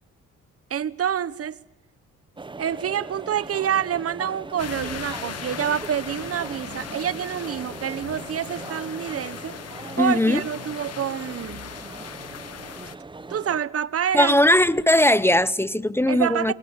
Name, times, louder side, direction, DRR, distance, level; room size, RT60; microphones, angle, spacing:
voice 1, 0.7-1.6 2.6-9.6 10.0-11.7 13.3-14.3 16.1-16.5, right 9 dB, 50° right, 1.2 m, -27 dB
sound 1, 2.4-13.6, right 3 dB, 15° right, 1.0 m, -40 dB
sound 2, 4.6-13.0, left 9 dB, 55° left, 1.3 m, -38 dB
voice 2, 10.0-10.4 14.1-16.5, left 1 dB, 10° left, 0.8 m, -19 dB
28.0 x 24.0 x 7.1 m
cardioid pair, 90°, 30 cm